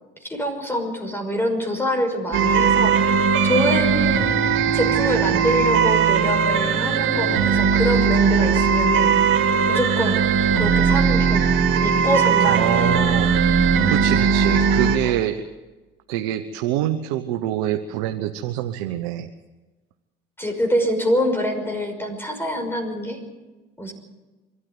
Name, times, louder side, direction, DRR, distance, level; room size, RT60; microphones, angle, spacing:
voice 1, 0.2-4.3 4.7-10.2 10.5-13.0 14.2-14.4 15.0-15.2 20.4-23.2 23.8-23.9, equal, 10° left, 4 dB, 5.8 m, -25 dB
sound 1, 2.3-15.0, right 6 dB, 65° right, 2.4 m, -19 dB
voice 2, 12.5-13.4 13.9-15.4 16.1-19.3, right 12 dB, 90° right, 7 dB, 1.0 m, -25 dB
24.5 x 13.0 x 9.7 m, 1.2 s
supercardioid pair, 75°, 21 cm